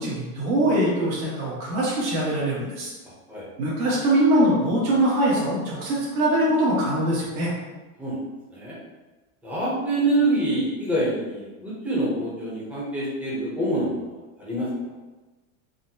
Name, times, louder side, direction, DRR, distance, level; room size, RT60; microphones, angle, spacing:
voice 1, 0.0-2.9 3.6-7.5, right 1 dB, 80° right, -7 dB, 1.3 m, -22 dB
voice 2, 9.4-14.9, right 1 dB, 5° right, -7 dB, 0.5 m, -26 dB
4.0 x 2.1 x 2.7 m, 1.2 s
supercardioid pair, 160°, 42 cm